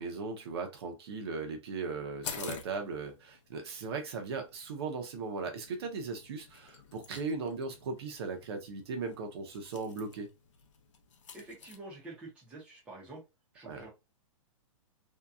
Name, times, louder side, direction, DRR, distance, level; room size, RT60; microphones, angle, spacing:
voice 1, 0.0-10.3 13.7-13.9, right 4 dB, 50° right, 0.7 m, -38 dB
sound 1, 2.2-11.8, left 6 dB, 60° left, 0.6 m, -49 dB
voice 2, 11.3-13.2 13.5-13.9, right 2 dB, 5° right, 0.6 m, -47 dB
2.8 x 2.2 x 2.3 m
hypercardioid pair, 165°, 18 cm